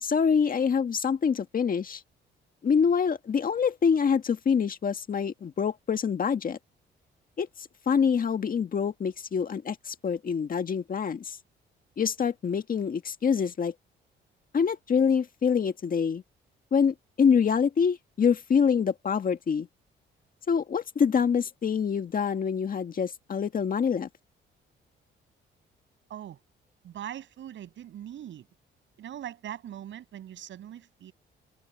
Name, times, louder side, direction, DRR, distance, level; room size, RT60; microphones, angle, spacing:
voice 1, 0.0-2.0 2.6-6.6 7.4-7.5 7.9-11.4 12.0-13.7 14.5-16.2 16.7-19.7 20.5-24.1, left 6 dB, 45° left, 1.8 m, -25 dB
voice 2, 26.8-28.5 29.0-31.1, right 11 dB, 70° right, 7.9 m, -41 dB
cardioid pair, 90°, 20 cm